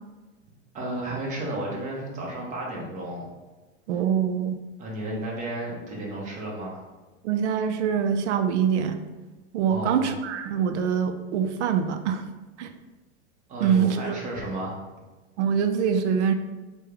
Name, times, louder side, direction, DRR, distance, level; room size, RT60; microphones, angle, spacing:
voice 1, 0.7-3.3 4.8-6.8 9.7-10.1 13.5-14.8, right 1 dB, 20° right, -3 dB, 0.8 m, -33 dB
voice 2, 3.9-4.6 7.2-9.1 9.5-12.3 12.6-12.7 13.6-14.2 15.4-16.3, right 7 dB, 85° right, 8 dB, 0.5 m, -24 dB
3.5 x 2.2 x 3.4 m, 1.2 s
supercardioid pair, 140°, 34 cm